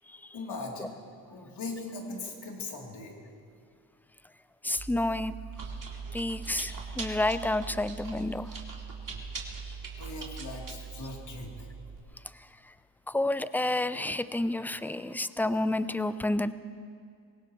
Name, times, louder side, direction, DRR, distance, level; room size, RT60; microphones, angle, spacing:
voice 1, 0.3-0.9 1.3-3.1 10.0-11.7, left 3 dB, 70° left, -2 dB, 3.5 m, -39 dB
voice 2, 4.6-5.3 6.1-8.6 13.1-16.5, left 1 dB, 5° left, 14 dB, 0.6 m, -30 dB
Chewing mastication, 4.8-12.0, right 5 dB, 45° right, 3.0 m, -41 dB
24.0 x 18.0 x 3.2 m, 2.4 s
cardioid pair, 55°, 43 cm